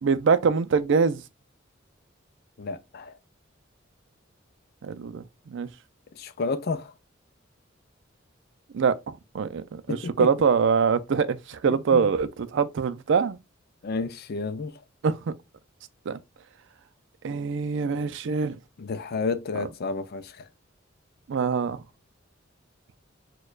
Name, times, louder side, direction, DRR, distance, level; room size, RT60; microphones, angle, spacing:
voice 1, 0.0-1.2 4.8-5.7 8.7-8.9 9.3-13.4 15.0-15.3 16.1-16.2 17.2-18.6 21.3-21.8, right 5 dB, 65° right, 0.4 m, -24 dB
voice 2, 2.6-3.1 6.2-6.9 9.9-10.3 11.7-12.1 13.8-14.7 18.8-20.4, left 4 dB, 50° left, 0.4 m, -31 dB
6.3 x 2.3 x 2.3 m
head